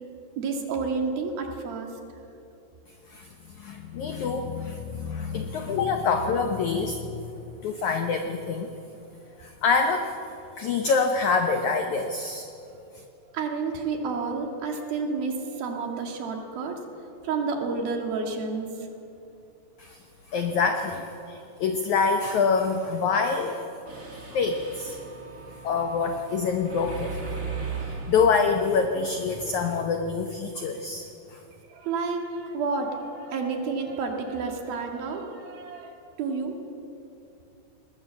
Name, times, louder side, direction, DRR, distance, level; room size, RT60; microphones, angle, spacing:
voice 1, 0.4-1.9 13.3-18.9 31.7-36.6, right 4 dB, 65° right, 3 dB, 3.6 m, -30 dB
voice 2, 3.1-7.2 7.6-8.7 9.4-10.1 10.6-12.4 12.9-13.0 19.8-20.0 20.3-23.6 24.3-25.0 25.6-31.4, left 5 dB, 80° left, 5 dB, 1.7 m, -26 dB
Mechanisms, 23.9-29.8, right 5 dB, 30° right, 1.5 m, -38 dB
20.5 x 19.5 x 7.6 m, 2.7 s
omnidirectional pair, 4.9 m